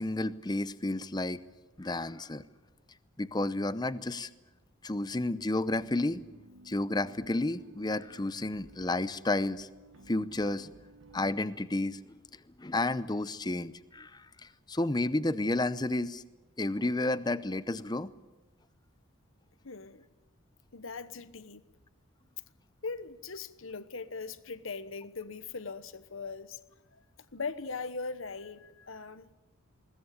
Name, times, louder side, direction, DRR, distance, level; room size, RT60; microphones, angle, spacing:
voice 1, 0.0-1.4 1.8-2.4 3.2-4.3 4.8-6.2 6.7-9.7 10.1-10.7 11.1-12.0 12.3-16.2 16.6-18.1, left 2 dB, 20° left, 0.7 m, -31 dB
sound 1, 5.7-11.3, right 1 dB, 75° right, 1.3 m, -55 dB
voice 2, 19.6-20.1 20.7-21.6 22.8-26.6 26.9-27.0 27.3-29.3, left 4 dB, 70° left, 1.1 m, -40 dB
21.0 x 19.5 x 8.4 m
head